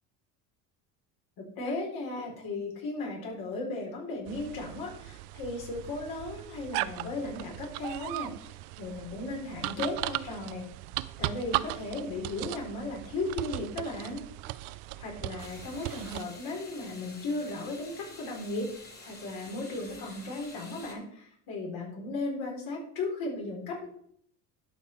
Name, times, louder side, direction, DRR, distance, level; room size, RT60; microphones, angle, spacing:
voice 1, 1.4-10.7 11.2-14.2 15.0-23.9, left 2 dB, 60° left, -1 dB, 4.1 m, -36 dB
sound 1, 4.3-16.2, right 18 dB, 75° right, 0.6 m, -37 dB
sound 2, 15.4-20.9, left 2 dB, 25° left, 2.6 m, -49 dB
12.0 x 5.5 x 4.5 m, 0.65 s
supercardioid pair, 105°, 41 cm